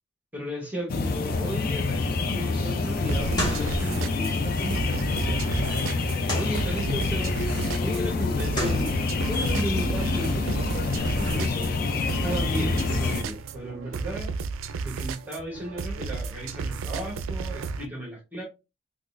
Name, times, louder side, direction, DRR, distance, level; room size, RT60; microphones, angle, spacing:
voice 1, 0.3-7.3 7.8-11.7 12.1-14.3 14.8-18.4, equal, 10° right, 1.0 m, -35 dB
sound 1, 0.9-13.2, left 4 dB, 50° left, 0.4 m, -27 dB
sound 2, 1.1-13.1, equal, 20° left, 1.3 m, -36 dB
sound 3, 3.1-17.9, right 4 dB, 90° right, 0.4 m, -33 dB
3.7 x 2.4 x 2.5 m
head